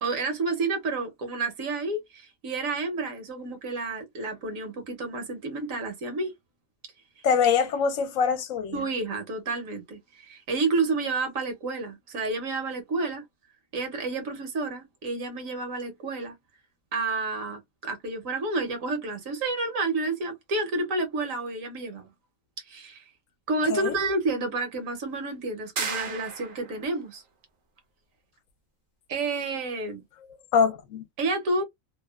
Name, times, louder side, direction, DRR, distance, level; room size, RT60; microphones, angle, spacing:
voice 1, 0.0-6.3 8.7-13.2 13.7-16.4 16.9-22.1 22.7-23.0 23.5-27.2 29.1-30.0 31.2-31.6, right 3 dB, 75° right, 1.2 m, -30 dB
voice 2, 7.2-8.8 23.7-24.0 30.5-31.0, left 6 dB, 75° left, 0.9 m, -24 dB
sound 1, 25.8-26.8, right 5 dB, 50° right, 0.7 m, -33 dB
2.8 x 2.1 x 2.2 m
omnidirectional pair, 1.4 m